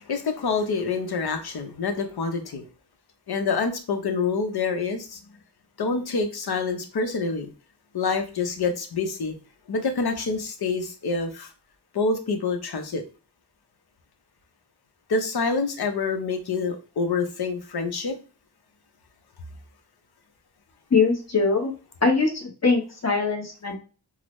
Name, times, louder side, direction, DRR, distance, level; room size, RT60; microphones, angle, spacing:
voice 1, 0.0-2.7 3.3-5.2 5.8-7.5 7.9-9.3 9.7-11.5 11.9-13.0 15.1-18.2, left 4 dB, 70° left, 6 dB, 0.7 m, -27 dB
voice 2, 20.9-21.7 22.0-23.8, left 4 dB, 40° left, 1 dB, 1.0 m, -22 dB
3.8 x 2.0 x 3.0 m, 0.34 s
wide cardioid pair, 65°, 40 cm